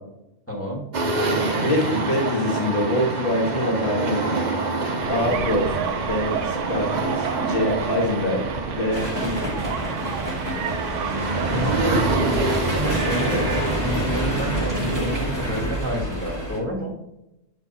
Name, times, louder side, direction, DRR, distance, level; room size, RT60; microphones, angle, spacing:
voice 1, 0.5-0.9 11.5-16.9, equal, 10° left, -2 dB, 1.7 m, -29 dB
sound 1, 0.9-15.6, right 3 dB, 40° right, 0.9 m, -27 dB
voice 2, 1.6-4.4 5.1-9.6, left 1 dB, 45° left, 0 dB, 1.6 m, -25 dB
sound 2, 5.0-13.2, right 7 dB, 75° right, 0.9 m, -31 dB
sound 3, 8.9-16.6, equal, 15° right, 1.6 m, -28 dB
7.8 x 4.5 x 4.0 m, 0.88 s
omnidirectional pair, 1.3 m